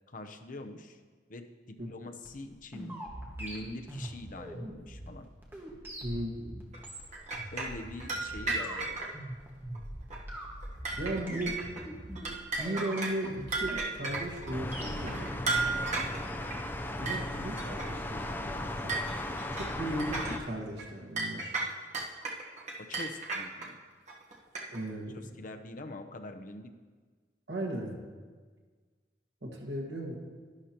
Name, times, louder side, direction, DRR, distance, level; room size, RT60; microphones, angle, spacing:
voice 1, 0.1-1.0 1.3-3.0 3.4-5.3 7.5-9.0 22.8-23.8 25.1-26.7, left 2 dB, 50° left, 6 dB, 0.7 m, -44 dB
sound 1, 2.2-15.1, right 1 dB, 10° right, 1.5 m, -43 dB
voice 2, 6.0-6.6 11.0-11.6 12.6-15.5 17.0-18.9 19.6-21.6 24.7-25.2 27.5-27.9 29.4-30.1, right 1 dB, 80° right, -1 dB, 1.7 m, -36 dB
sound 2, 6.7-9.1 9.8-9.9 10.1-10.4 10.6-11.8 12.2-14.5 15.0-16.6 17.1-17.2 17.6-17.9 18.3-18.4 18.9-20.4 20.8-20.9 21.2-23.7 24.1-24.9, right 3 dB, 40° right, 1.2 m, -34 dB
sound 3, 14.5-20.4, left 1 dB, 10° left, 0.6 m, -36 dB
11.5 x 11.0 x 2.9 m, 1.5 s
head